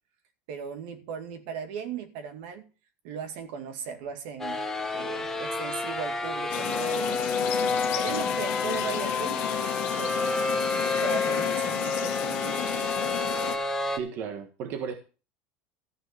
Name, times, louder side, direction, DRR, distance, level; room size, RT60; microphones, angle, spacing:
voice 1, 0.5-2.7 3.0-4.6 4.9-12.7, right 6 dB, 70° right, 2.2 m, -38 dB
sound 1, 4.4-14.0, left 3 dB, 10° left, 1.2 m, -29 dB
sound 2, 6.5-13.6, left 14 dB, 55° left, 1.5 m, -33 dB
voice 2, 13.9-14.9, right 6 dB, 45° right, 1.4 m, -35 dB
14.0 x 6.0 x 6.6 m
cardioid pair, 160°, 5 cm